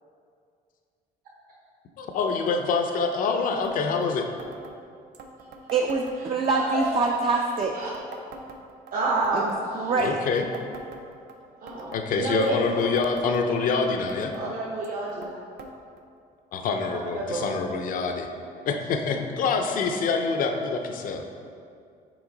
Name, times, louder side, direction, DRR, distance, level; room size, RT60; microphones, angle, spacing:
voice 1, 2.0-4.3 10.0-10.5 11.9-14.3 16.5-18.3 18.7-21.2, left 4 dB, 55° left, 5 dB, 0.6 m, -26 dB
sound 1, 3.6-3.8 4.0-4.1 4.4-4.7 5.1-6.5 6.8-7.2 7.6-8.9 9.2-9.6 10.0-11.4 11.7-12.0 12.4-13.8 14.1-14.5 14.8-15.3 15.6-15.7 16.0-16.1 16.8-16.9 17.7-17.8, right 3 dB, 85° right, 0.6 m, -44 dB
voice 2, 5.7-7.7 9.3-10.2, right 4 dB, 35° right, 1 dB, 0.4 m, -25 dB
voice 3, 6.5-6.8 7.7-7.9 8.9-9.9 11.6-12.6 14.3-15.3 17.1-17.5, right 3 dB, 55° right, -5 dB, 1.0 m, -29 dB
6.1 x 4.4 x 3.8 m, 2.4 s
cardioid pair, 110°, 17 cm